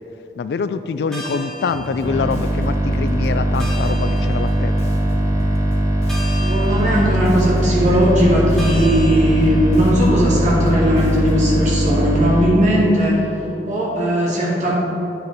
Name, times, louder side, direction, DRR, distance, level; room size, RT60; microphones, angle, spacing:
voice 1, 0.4-4.7, left 5 dB, 70° left, 12 dB, 0.3 m, -24 dB
sound 1, 0.9-10.0, right 1 dB, 5° left, 1.1 m, -36 dB
Bass guitar, 1.7-11.6, equal, 40° left, 0.9 m, -36 dB
sound 2, 2.0-12.4, right 1 dB, 20° right, 0.7 m, -20 dB
voice 2, 6.3-13.2 13.6-14.7, equal, 40° right, -5 dB, 1.9 m, -18 dB
9.2 x 5.0 x 4.8 m, 3.0 s
head